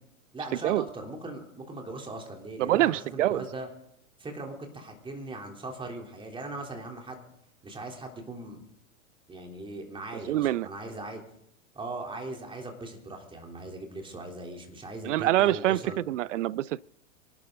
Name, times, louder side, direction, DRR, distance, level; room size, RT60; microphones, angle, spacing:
voice 1, 0.3-3.7 4.2-7.2 7.6-8.6 9.3-11.2 11.7-16.0, right 2 dB, 15° right, 3.5 m, -39 dB
voice 2, 2.6-3.5 10.3-10.7 15.0-16.9, right 14 dB, 65° right, 0.5 m, -25 dB
26.0 x 12.0 x 3.9 m
figure-of-eight pair, 95°, 40 cm